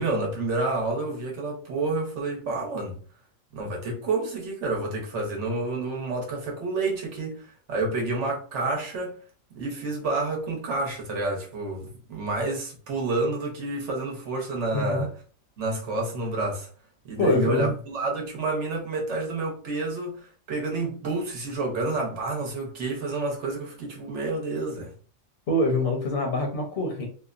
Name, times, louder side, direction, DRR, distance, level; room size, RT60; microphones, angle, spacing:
voice 1, 0.0-3.0 3.5-9.2 9.5-15.1 15.6-16.7 17.0-24.9, right 2 dB, 65° right, 1.1 m, -29 dB
voice 2, 14.7-15.1 17.2-17.7 25.5-27.1, left 2 dB, 50° left, 0.7 m, -25 dB
2.9 x 2.1 x 2.4 m
omnidirectional pair, 1.4 m